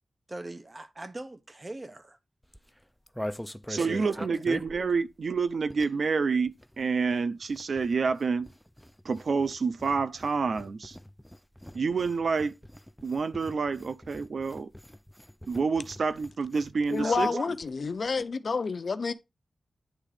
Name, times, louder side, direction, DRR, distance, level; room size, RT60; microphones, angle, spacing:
voice 1, 0.3-2.2 3.7-4.4 17.0-17.5, right 2 dB, 25° right, 1.0 m, -39 dB
sound 1, 2.4-6.2 6.4-17.3 17.6-17.7 17.9-18.2, left 1 dB, 5° left, 0.5 m, -44 dB
voice 2, 3.7-8.5 9.0-11.0 11.7-12.5 13.0-14.7 15.5-17.3, right 5 dB, 65° right, 0.6 m, -28 dB
voice 3, 16.9-19.1, left 4 dB, 60° left, 0.7 m, -29 dB
10.0 x 3.7 x 4.9 m
wide cardioid pair, 110°, 0 cm